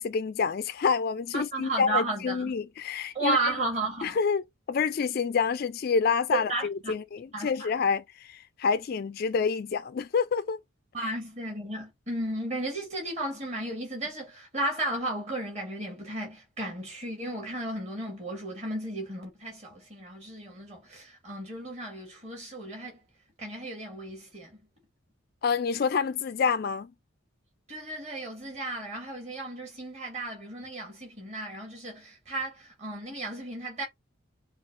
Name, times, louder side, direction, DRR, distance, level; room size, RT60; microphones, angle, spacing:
voice 1, 0.0-3.5 4.0-10.6 11.0-11.1 25.4-26.9, left 5 dB, 45° left, 0.3 m, -28 dB
voice 2, 1.3-2.5 3.1-4.2 6.3-6.9 7.3-7.7 10.9-23.0 23.4-24.6 27.7-33.8, right 2 dB, 30° right, 1.8 m, -34 dB
6.1 x 2.4 x 2.5 m
head